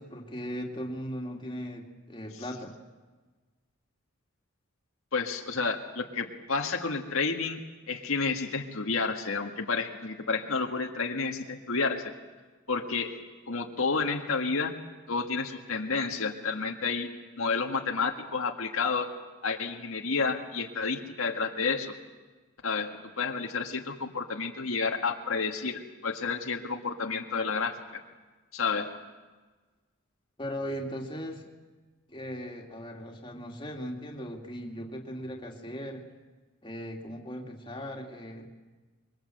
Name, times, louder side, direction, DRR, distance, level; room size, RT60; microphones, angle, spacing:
voice 1, 0.0-2.7 30.4-31.5 32.1-36.0 36.6-38.5, equal, 20° left, 1 dB, 2.5 m, -38 dB
voice 2, 5.1-7.6 7.9-12.1 12.7-13.2 13.5-14.7 15.1-19.1 19.4-21.9 22.6-27.8 28.5-28.9, left 4 dB, 75° left, 3 dB, 1.8 m, -30 dB
25.0 x 23.0 x 7.8 m, 1.3 s
head